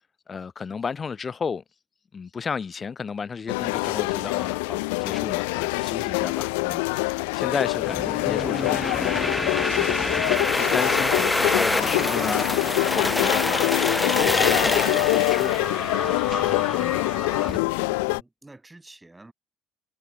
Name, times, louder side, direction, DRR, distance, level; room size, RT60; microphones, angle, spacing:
voice 1, 0.3-1.6 2.1-9.2 9.7-13.7 14.0-15.5 16.8-17.0, left 5 dB, 35° left, 1.1 m, -33 dB
sound 1, 3.5-18.2, left 28 dB, 75° left, 0.4 m, -25 dB
sound 2, 7.8-17.6, left 2 dB, 15° left, 1.1 m, -26 dB
voice 2, 17.4-19.3, right 2 dB, 15° right, 2.6 m, -49 dB
hypercardioid pair, 55°, 0 cm